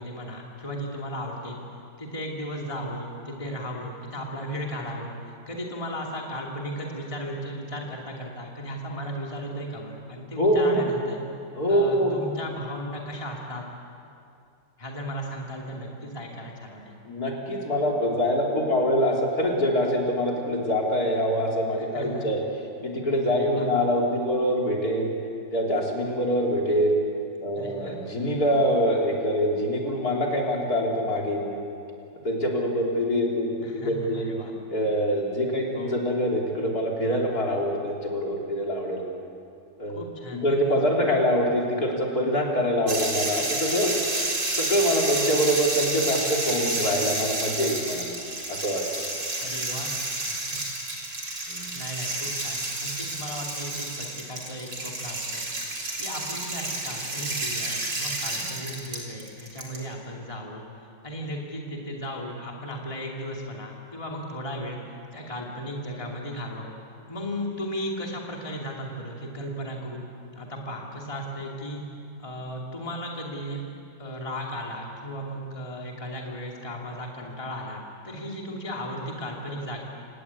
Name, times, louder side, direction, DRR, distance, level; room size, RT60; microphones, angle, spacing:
voice 1, 0.0-1.6 2.0-11.2 11.7-13.6 14.8-17.0 21.8-22.3 23.3-23.7 27.5-28.0 33.6-34.5 35.7-36.0 39.9-41.1 46.5-47.0 49.4-49.9 50.3-50.7 51.7-55.4 56.0-64.8 65.1-66.7 67.1-70.1 70.3-71.8 72.2-73.6 74.0-79.8, equal, 15° left, -1 dB, 2.8 m, -36 dB
voice 2, 10.4-10.8 11.5-12.1 17.1-22.4 22.8-25.1 25.5-26.9 27.4-31.6 32.2-34.3 34.7-39.0 39.8-40.0 40.4-43.9 44.5-48.1 48.5-48.8 51.5-51.7 58.4-58.5, equal, 55° left, -1 dB, 4.0 m, -24 dB
sound 1, 42.9-59.8, right 2 dB, 90° right, 4.6 m, -30 dB
28.0 x 18.5 x 8.5 m, 2.5 s
omnidirectional pair, 1.9 m